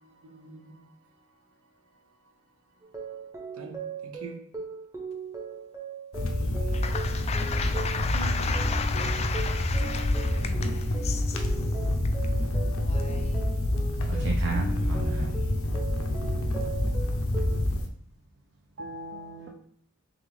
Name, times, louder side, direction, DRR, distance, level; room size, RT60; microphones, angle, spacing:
voice 1, 0.0-1.4 3.5-4.4, right 4 dB, 90° right, 0.8 m, -46 dB
sound 1, 2.8-17.7, right 4 dB, 15° right, 0.8 m, -40 dB
sound 2, 6.1-17.9, left 1 dB, 75° left, 0.6 m, -27 dB
voice 2, 6.7-11.2 12.6-13.3, left 6 dB, 30° left, 0.3 m, -34 dB
voice 3, 14.1-15.3 18.8-19.5, right 3 dB, 55° right, 0.5 m, -33 dB
3.6 x 3.5 x 3.5 m
head